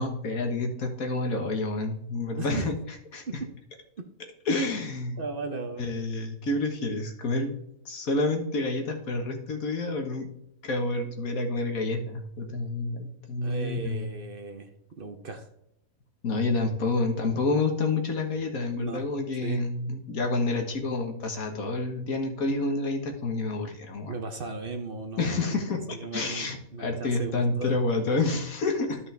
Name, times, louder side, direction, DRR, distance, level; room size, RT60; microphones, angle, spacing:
voice 1, 0.0-2.8 3.1-3.2 4.5-5.2 5.8-7.6 7.9-10.3 10.6-14.1 16.2-24.1 25.2-29.0, left 2 dB, 75° left, 3 dB, 1.8 m, -28 dB
voice 2, 5.2-5.9 13.4-15.5 18.7-19.0 19.4-19.6 24.1-28.1, right 3 dB, 45° right, 5 dB, 1.0 m, -37 dB
13.0 x 5.4 x 3.4 m, 0.79 s
omnidirectional pair, 1.5 m